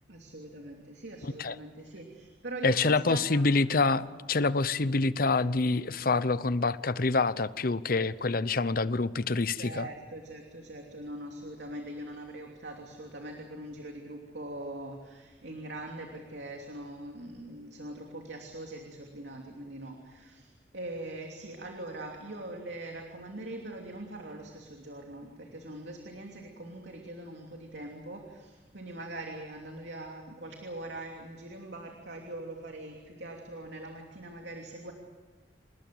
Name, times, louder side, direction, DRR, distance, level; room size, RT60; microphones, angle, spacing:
voice 1, 0.1-3.6 9.5-34.9, right 1 dB, 75° right, 2 dB, 3.0 m, -42 dB
voice 2, 1.2-1.6 2.6-9.9, left 3 dB, 50° left, 16 dB, 0.8 m, -26 dB
28.0 x 20.0 x 7.8 m, 1.3 s
head